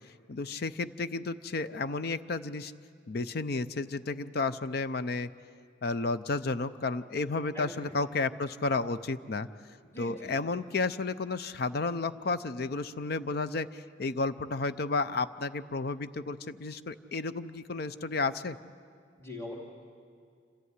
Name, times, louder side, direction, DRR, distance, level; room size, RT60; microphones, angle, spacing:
voice 1, 0.3-2.7 3.1-5.3 5.8-9.5 10.0-18.6, left 3 dB, 55° left, 13 dB, 0.6 m, -32 dB
voice 2, 7.5-7.9 9.9-10.3 19.2-19.5, left 1 dB, 15° left, -4 dB, 2.5 m, -42 dB
26.5 x 14.0 x 9.5 m, 2.2 s
head